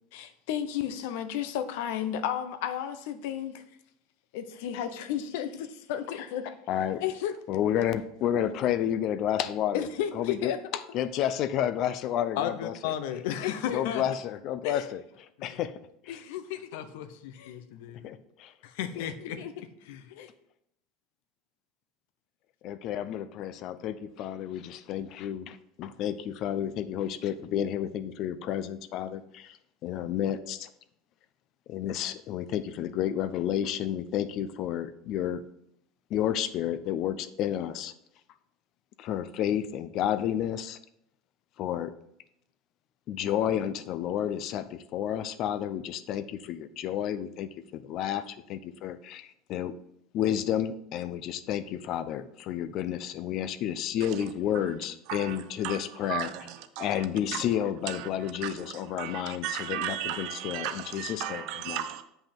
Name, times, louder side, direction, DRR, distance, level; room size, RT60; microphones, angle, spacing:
voice 1, 0.1-3.6 4.3-6.5 7.0-7.4 9.7-10.6 12.4-14.0 14.6-14.9 15.4-15.6 16.1-18.1 18.6-20.3, left 9 dB, 75° left, 0.8 m, -33 dB
voice 2, 6.7-7.0 7.5-9.9 10.1-10.5 10.9-12.9 13.7-15.8 16.0-16.2 18.0-18.5 19.0-19.1 22.6-30.7 31.7-35.4 36.1-37.9 39.0-40.8 41.6-41.9 43.1-49.7 50.1-56.3 56.8-61.8, left 10 dB, 45° left, 0.5 m, -31 dB
voice 3, 55.1-55.8 56.1-57.0 57.3-57.4 57.9-58.5 59.0-62.0, right 11 dB, 60° right, 0.7 m, -35 dB
7.6 x 5.5 x 4.4 m
supercardioid pair, 150°, 0 cm